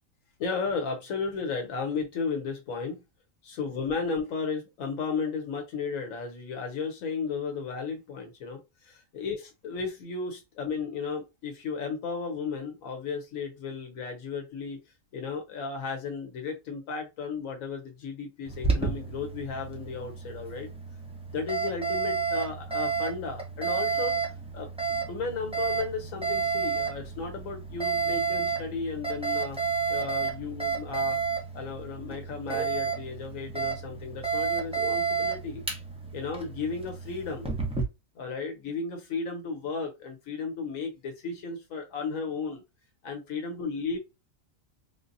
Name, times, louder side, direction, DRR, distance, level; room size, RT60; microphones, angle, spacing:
voice 1, 0.4-3.0 3.4-14.8 15.1-20.7 21.3-29.6 29.9-31.2 31.5-35.6 36.1-37.5 38.1-42.6 43.0-44.0, left 4 dB, 75° left, 1.1 m, -34 dB
Alarm, 18.5-37.8, right 5 dB, 5° right, 0.6 m, -31 dB
3.6 x 2.6 x 2.6 m
omnidirectional pair, 1.4 m